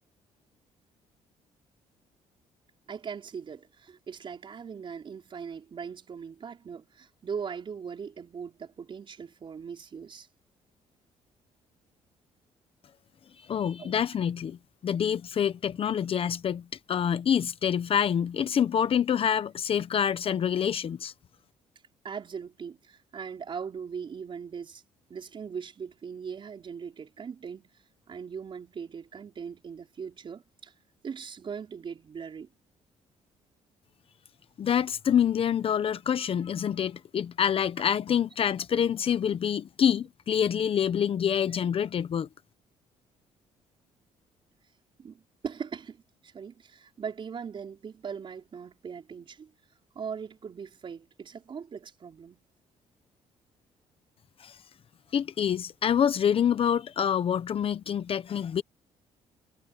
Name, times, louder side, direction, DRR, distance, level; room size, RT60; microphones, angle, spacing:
voice 1, 2.9-10.3 13.8-13.9 22.0-24.8 25.1-27.7 28.1-30.7 31.0-32.5 41.5-41.6 45.0-49.5 50.0-52.4, right 6 dB, 45° right, 5.3 m, -40 dB
voice 2, 13.5-14.6 14.8-21.1 34.6-42.3 54.4-54.6 55.1-58.6, left 8 dB, 50° left, 1.1 m, -26 dB
cardioid pair, 95°, 12 cm